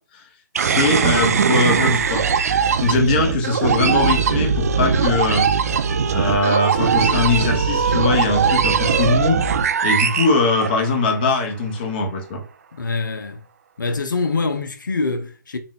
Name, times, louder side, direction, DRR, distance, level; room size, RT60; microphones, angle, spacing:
voice 1, 0.6-2.2 2.8-5.5 6.1-9.4 9.8-12.4, left 3 dB, 30° left, 0.8 m, -21 dB
sound 1, 0.6-11.2, right 6 dB, 50° right, 0.4 m, -20 dB
voice 2, 12.7-13.4 13.8-15.6, left 3 dB, 75° left, 0.6 m, -24 dB
3.9 x 2.3 x 3.6 m
figure-of-eight pair, 150°, 10 cm